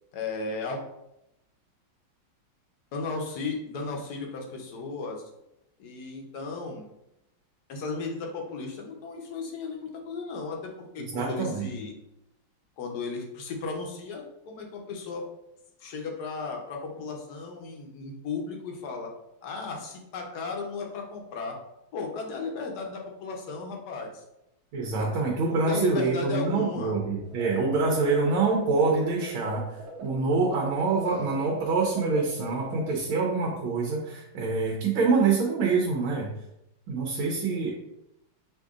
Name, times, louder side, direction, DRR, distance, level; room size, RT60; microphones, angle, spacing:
voice 1, 0.1-0.8 2.9-5.2 5.8-6.8 7.7-12.0 12.8-15.3 15.8-19.1 19.4-21.6 21.9-24.2 25.0-26.9, left 4 dB, 65° left, 1 dB, 1.1 m, -35 dB
voice 2, 11.1-11.7 24.7-36.3 36.9-37.7, right 4 dB, 80° right, -2 dB, 1.5 m, -26 dB
sound 1, 27.2-32.8, right 2 dB, 60° right, 1.1 m, -43 dB
6.6 x 2.6 x 2.4 m, 0.85 s
omnidirectional pair, 2.3 m